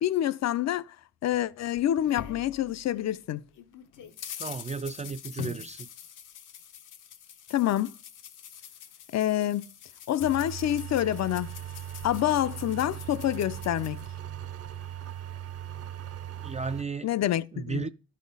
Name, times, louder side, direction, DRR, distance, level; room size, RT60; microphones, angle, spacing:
voice 1, 0.0-0.8 1.2-3.4 7.5-7.9 9.1-9.6 10.1-11.5 12.0-14.0 17.0-17.9, left 12 dB, 60° left, 0.5 m, -27 dB
sound 1, 1.3-3.2 3.5-14.1, left 8 dB, 85° left, 1.0 m, -45 dB
voice 2, 4.4-5.9 16.4-17.1 17.5-17.9, right 4 dB, 25° right, 0.3 m, -34 dB
sound 2, 10.2-16.8, right 11 dB, 50° right, 0.8 m, -39 dB
12.0 x 4.2 x 5.3 m
cardioid pair, 100°, 30 cm